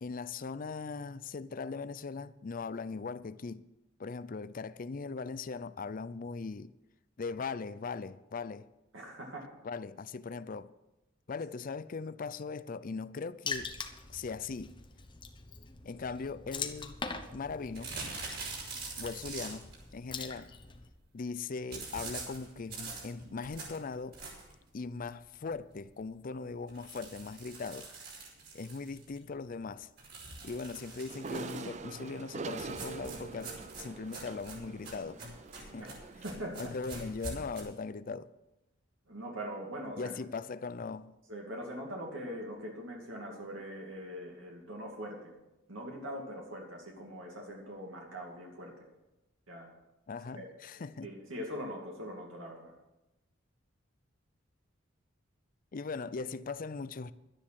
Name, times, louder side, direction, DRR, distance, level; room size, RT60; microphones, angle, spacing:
voice 1, 0.0-3.6 4.0-6.7 7.2-8.7 9.6-10.7 11.3-13.7 14.1-14.8 15.8-17.0 17.3-17.9 19.0-20.5 21.1-24.2 24.7-27.9 28.5-29.9 30.4-35.8 36.6-38.3 40.0-41.1 50.1-51.1 55.7-57.1, left 4 dB, 45° left, 0.5 m, -39 dB
voice 2, 8.9-9.5 35.8-36.0 36.2-36.7 39.1-40.1 41.3-45.3 45.7-48.9 49.5-49.7 50.3-50.5 50.7-52.7, equal, 80° right, 2.5 m, -42 dB
Water / Splash splatter, 13.5-20.9, left 4 dB, 25° left, 1.0 m, -43 dB
sound 1, 17.7-19.8 21.7-24.6 25.1-25.2 25.5-25.6 25.9-26.0 26.7-29.2 30.0-31.8 32.6-37.6, right 3 dB, 55° right, 5.1 m, -44 dB
sound 2, 31.1-36.3, right 4 dB, 35° right, 0.6 m, -44 dB
12.0 x 10.5 x 6.3 m
head